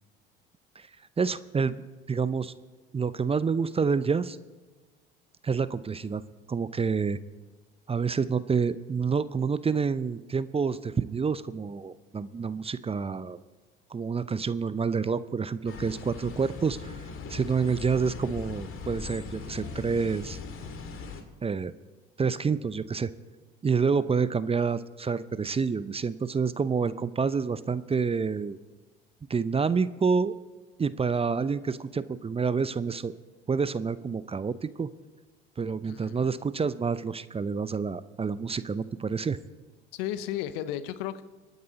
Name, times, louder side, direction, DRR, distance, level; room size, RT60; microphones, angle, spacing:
voice 1, 1.2-1.8 2.1-2.5 2.9-4.4 5.4-6.2 6.5-7.2 7.9-13.4 13.9-16.9 17.3-20.4 21.4-21.7 22.2-23.1 23.6-28.6 29.3-30.3 30.8-33.1 33.5-34.9 35.6-39.4, right 5 dB, 20° right, 15 dB, 0.6 m, -28 dB
sound 1, 15.7-21.2, left 5 dB, 45° left, 2.1 m, -40 dB
voice 2, 35.8-36.3 39.9-41.2, left 11 dB, 70° left, 14 dB, 1.0 m, -34 dB
25.5 x 9.5 x 4.1 m, 1.3 s
hypercardioid pair, 65°, 29 cm